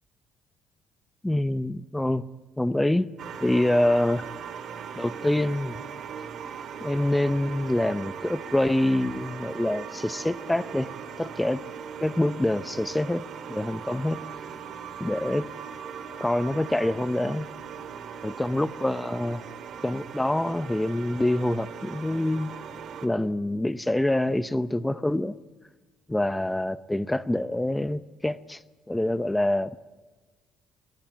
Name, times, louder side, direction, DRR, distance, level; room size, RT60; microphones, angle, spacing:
voice 1, 1.2-2.3 2.6-3.1 3.4-4.3 5.0-5.8 6.8-10.9 11.2-11.6 12.0-13.2 13.5-14.2 15.0-15.5 16.2-17.5 18.2-19.4 19.8-22.5 23.0-25.4 26.1-28.6 28.9-29.8, left 1 dB, 10° left, 0.7 m, -26 dB
sound 1, 3.2-23.1, right 7 dB, 60° right, 2.3 m, -39 dB
21.0 x 19.5 x 9.1 m
cardioid pair, 105°, 0 cm